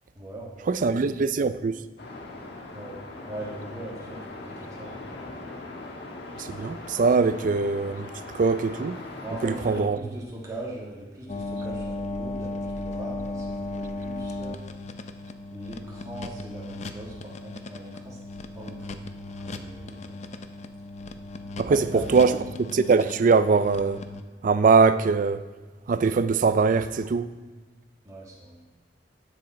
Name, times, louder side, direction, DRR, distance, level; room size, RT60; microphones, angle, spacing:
voice 1, 0.1-0.7 2.7-5.4 9.2-14.6 15.5-18.2 18.5-19.0 19.4-20.2 21.6-22.4 28.0-28.6, right 1 dB, 20° right, 1.5 m, -40 dB
voice 2, 0.7-1.8 6.5-8.1 8.3-9.0 9.4-10.0 21.6-22.4 22.7-24.0 24.4-25.4 25.9-27.3, right 4 dB, 50° right, 0.4 m, -22 dB
sound 1, 2.0-9.8, left 2 dB, 70° left, 1.3 m, -40 dB
sound 2, 11.3-24.2, left 2 dB, 40° left, 0.5 m, -36 dB
8.7 x 6.5 x 4.3 m
head